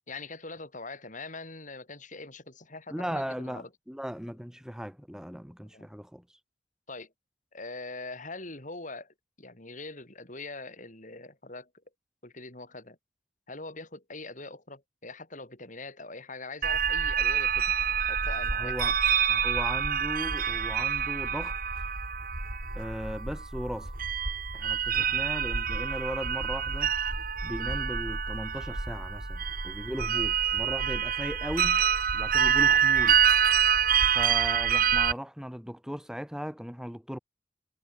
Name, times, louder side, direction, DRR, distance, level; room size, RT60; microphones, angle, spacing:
voice 1, 0.1-3.7 5.7-5.9 6.9-7.1 7.5-11.7 12.2-13.0 13.5-17.7 18.0-18.9 24.9-25.2 34.2-34.4, left 3 dB, 45° left, 7.7 m, -43 dB
voice 2, 2.9-6.2 18.6-18.9 19.3-21.6 22.7-23.9 24.5-26.9 27.4-31.8 32.1-33.2 34.1-37.2, equal, 5° right, 4.9 m, -37 dB
sound 1, 16.6-35.1, right 8 dB, 50° right, 3.1 m, -27 dB
head